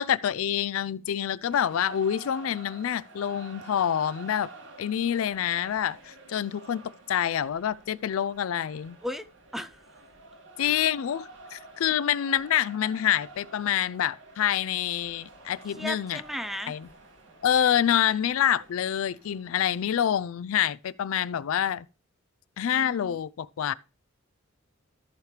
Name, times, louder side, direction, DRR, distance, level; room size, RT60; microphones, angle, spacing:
voice 1, 0.0-4.5 4.8-9.0 10.6-16.2 16.7-16.9 17.4-21.8 22.6-23.7, left 9 dB, 75° left, 0.4 m, -27 dB
sound 1, 1.5-20.0, right 3 dB, 60° right, 2.1 m, -49 dB
voice 2, 9.5-9.8 10.6-10.9 11.9-12.0 15.8-16.7 22.7-23.2, equal, ahead, 0.4 m, -36 dB
14.0 x 5.0 x 3.2 m
head